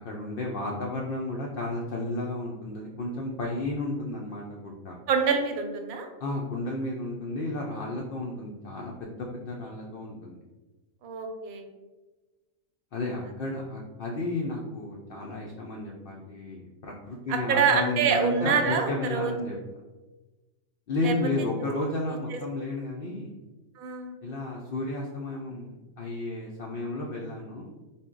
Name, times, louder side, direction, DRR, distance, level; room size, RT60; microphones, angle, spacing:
voice 1, 0.0-5.0 6.2-10.4 12.9-19.6 20.9-23.3 24.2-27.7, left 2 dB, 75° left, -2 dB, 0.5 m, -32 dB
voice 2, 5.1-6.1 11.0-11.7 17.3-19.3 21.0-21.1 22.3-22.4 23.8-24.1, right 6 dB, 85° right, 5 dB, 1.0 m, -26 dB
4.0 x 2.1 x 3.6 m, 1.2 s
omnidirectional pair, 1.5 m